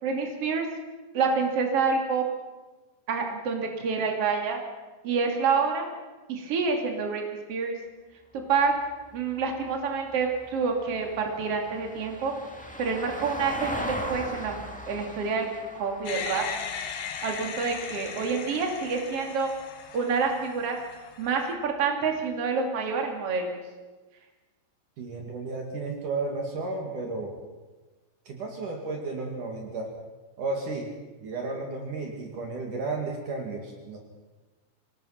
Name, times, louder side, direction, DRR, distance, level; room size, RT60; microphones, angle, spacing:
voice 1, 0.0-0.7 1.1-2.2 3.1-4.6 5.0-5.9 6.3-7.8 8.3-8.7 9.1-12.3 12.8-15.5 15.7-16.5 17.2-19.5 19.9-20.8 21.2-23.6, right 5 dB, 40° right, 2 dB, 3.3 m, -27 dB
Vehicle, 8.4-18.8 21.1-21.2, equal, 10° left, 0.5 m, -40 dB
sound 1, 16.1-21.5, left 6 dB, 80° left, 3.6 m, -38 dB
voice 2, 25.0-27.3 28.3-29.9 30.4-30.9 31.2-34.0, right 3 dB, 55° right, 1 dB, 3.5 m, -33 dB
25.5 x 19.5 x 5.8 m, 1.2 s
omnidirectional pair, 4.5 m